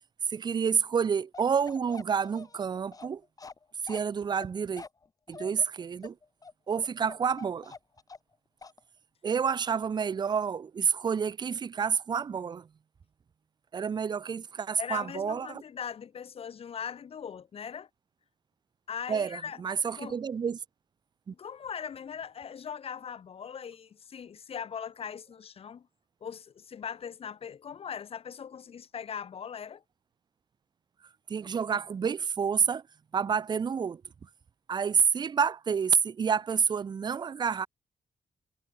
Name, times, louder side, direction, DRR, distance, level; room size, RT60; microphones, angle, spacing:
voice 1, 0.3-3.2 3.8-4.8 5.3-6.1 6.7-7.7 9.2-12.7 13.7-15.6 19.1-20.6 21.3-21.4 31.3-32.8 33.1-34.0 34.7-37.7, right 6 dB, 40° right, 0.6 m, -29 dB
Bark, 1.3-8.3 8.6-8.8, left 4 dB, 30° left, 1.7 m, -46 dB
voice 2, 14.8-17.9 18.9-19.6 20.0-20.2 21.3-25.9 26.2-29.8, left 7 dB, 55° left, 1.8 m, -40 dB
cardioid pair, 105°, 12 cm